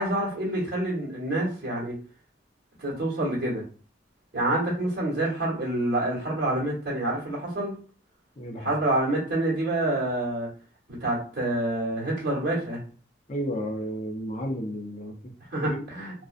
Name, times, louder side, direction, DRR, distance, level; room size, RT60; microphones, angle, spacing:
voice 1, 0.0-1.9 2.8-3.6 4.3-7.8 8.6-10.5 11.0-12.8 15.5-16.1, right 1 dB, 55° right, -7 dB, 1.1 m, -27 dB
voice 2, 8.4-8.7 13.3-15.3 15.7-15.8, equal, 40° left, 1 dB, 0.5 m, -32 dB
2.5 x 2.0 x 2.4 m, 0.40 s
head